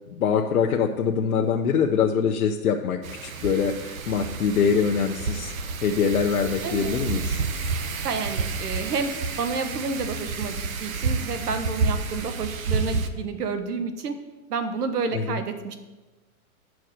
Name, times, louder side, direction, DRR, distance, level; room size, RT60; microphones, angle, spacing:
voice 1, 0.1-5.5 5.8-7.4 15.1-15.4, left 6 dB, 70° left, 1 dB, 0.8 m, -24 dB
Wind, 3.0-13.1, right 4 dB, 60° right, 0.9 m, -30 dB
voice 2, 6.6-7.0 8.0-14.2 14.5-15.8, right 4 dB, 80° right, 8 dB, 1.3 m, -30 dB
9.1 x 4.7 x 6.6 m, 1.2 s
hypercardioid pair, 175°, 45 cm